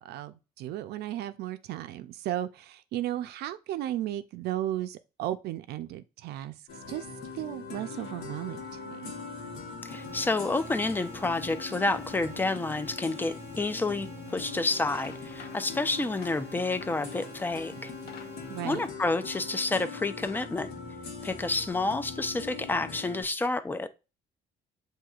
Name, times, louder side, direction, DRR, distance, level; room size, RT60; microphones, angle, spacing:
voice 1, 0.0-6.5 6.9-7.1 7.3-9.1 18.5-18.8, right 13 dB, 75° right, 0.5 m, -35 dB
sound 1, 6.7-23.2, left 4 dB, 80° left, 1.3 m, -42 dB
voice 2, 9.8-17.9 18.6-20.7 21.2-23.9, left 3 dB, 10° left, 0.4 m, -29 dB
sound 2, 9.9-18.9, right 1 dB, 15° right, 0.8 m, -49 dB
sound 3, 14.2-14.4 14.7-17.5 17.8-19.5, left 6 dB, 60° left, 0.7 m, -50 dB
7.6 x 2.7 x 2.4 m
cardioid pair, 110°, 17 cm